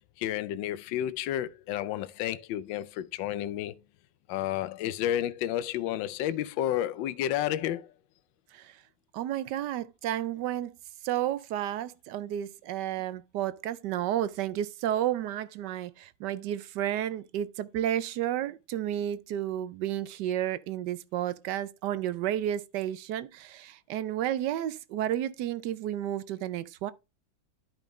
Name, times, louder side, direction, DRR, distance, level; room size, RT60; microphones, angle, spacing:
voice 1, 0.2-3.7 4.3-7.9, left 12 dB, 80° left, 1.3 m, -31 dB
voice 2, 8.5-8.8 9.1-10.7 11.0-26.9, right 11 dB, 70° right, 1.2 m, -32 dB
11.5 x 5.2 x 3.1 m
omnidirectional pair, 2.0 m